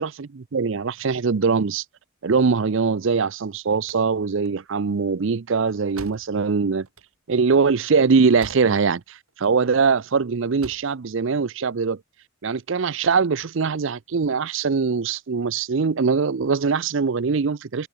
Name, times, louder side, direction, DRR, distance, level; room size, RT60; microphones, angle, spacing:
voice 1, 0.0-1.8 2.2-6.9 7.3-12.0 12.4-17.9, right 5 dB, 60° right, 0.5 m, -22 dB
sound 1, 3.7-9.0 9.3-10.0 10.4-11.0, right 2 dB, 85° right, 7.0 m, -45 dB
open air
head